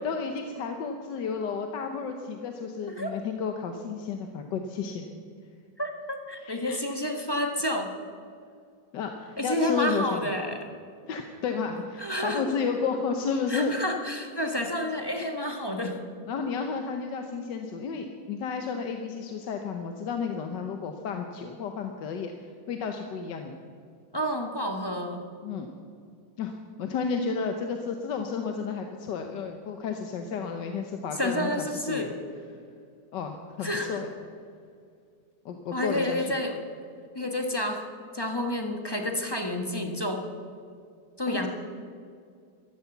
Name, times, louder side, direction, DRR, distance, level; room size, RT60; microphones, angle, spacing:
voice 1, 0.0-5.1 6.4-6.8 8.9-10.2 11.1-13.8 16.2-23.5 25.4-25.7 26.4-26.5 26.8-32.2 33.1-34.1 35.4-36.3 41.3-41.5, left 5 dB, 75° left, 5 dB, 1.5 m, -32 dB
voice 2, 5.8-7.9 9.4-10.6 12.0-12.6 13.5-16.0 24.1-25.3 31.2-32.1 33.6-34.0 35.7-36.6 37.1-37.9 38.1-40.3 41.2-41.5, left 1 dB, 15° left, 3 dB, 0.9 m, -30 dB
14.5 x 13.0 x 7.1 m, 2.3 s
omnidirectional pair, 2.0 m